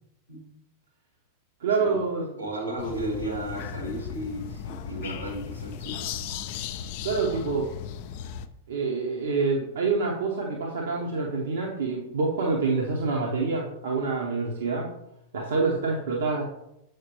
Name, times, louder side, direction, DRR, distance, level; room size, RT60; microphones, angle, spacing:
voice 1, 1.6-2.3 7.0-7.7 8.7-14.9 15.3-16.4, right 4 dB, 60° right, -1 dB, 0.8 m, -26 dB
voice 2, 2.4-6.0, right 1 dB, 85° right, 0 dB, 1.7 m, -34 dB
sound 1, 2.8-8.5, left 8 dB, 50° left, 0.4 m, -36 dB
6.5 x 5.1 x 2.9 m, 0.84 s
figure-of-eight pair, 90°, 0 cm